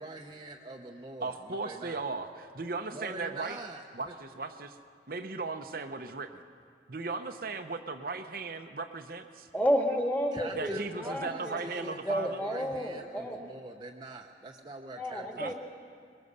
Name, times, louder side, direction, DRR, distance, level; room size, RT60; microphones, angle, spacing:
voice 1, 0.0-2.0 2.9-4.1 10.3-15.5, right 2 dB, 25° right, 1 dB, 0.9 m, -44 dB
voice 2, 1.2-3.6 3.9-4.8 5.1-6.4 6.9-9.5 10.5-12.4 15.4-15.5, right 3 dB, 55° right, 6 dB, 0.8 m, -37 dB
voice 3, 9.5-13.4 14.9-15.5, equal, 10° left, 2 dB, 2.0 m, -31 dB
23.0 x 21.0 x 6.8 m, 2.3 s
head